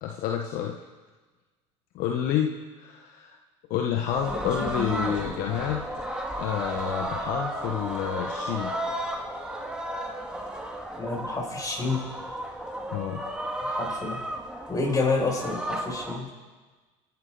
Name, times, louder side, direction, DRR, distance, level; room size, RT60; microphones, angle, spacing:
voice 1, 0.0-0.8 1.9-3.4 3.7-5.8 6.4-8.7 12.9-13.2, left 9 dB, 60° left, 2 dB, 1.3 m, -29 dB
sound 1, 4.1-16.2, right 1 dB, 5° right, 2.4 m, -33 dB
voice 2, 11.0-12.0 13.6-14.3 14.7-16.3, left 3 dB, 20° left, -2 dB, 6.5 m, -28 dB
30.0 x 12.0 x 4.1 m, 1.3 s
hypercardioid pair, 75°, 16 cm